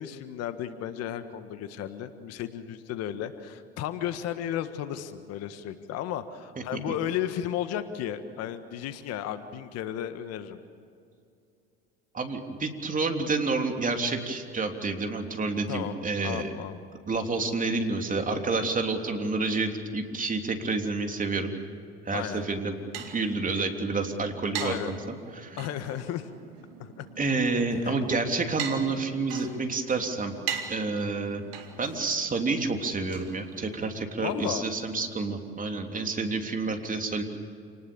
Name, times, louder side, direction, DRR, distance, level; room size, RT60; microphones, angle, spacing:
voice 1, 0.0-10.6 15.7-16.0 16.2-16.8 22.1-22.4 24.6-24.9 25.6-26.3 26.8-27.1 27.8-28.0 29.5-29.7 34.2-34.6, left 10 dB, 60° left, 10 dB, 1.7 m, -34 dB
voice 2, 12.1-16.5 17.1-21.5 22.0-22.7 23.1-25.0 25.3-25.6 27.2-30.4 30.7-31.4 31.8-37.2, right 3 dB, 30° right, 4 dB, 3.4 m, -29 dB
sound 1, 22.3-34.0, right 8 dB, 80° right, 2.3 m, -41 dB
28.5 x 20.0 x 7.1 m, 2.4 s
hypercardioid pair, 70°, 29 cm